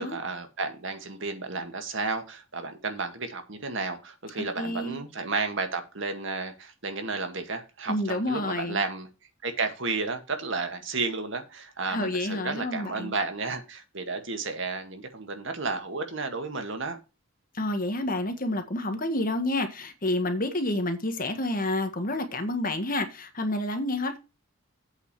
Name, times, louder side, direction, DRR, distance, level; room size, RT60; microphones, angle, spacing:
voice 1, 0.0-9.1 9.4-17.0, right 3 dB, 60° right, 1.9 m, -32 dB
voice 2, 4.4-5.0 7.9-8.8 11.9-13.1 17.5-24.2, left 1 dB, 40° left, 1.6 m, -29 dB
8.2 x 4.9 x 7.4 m
head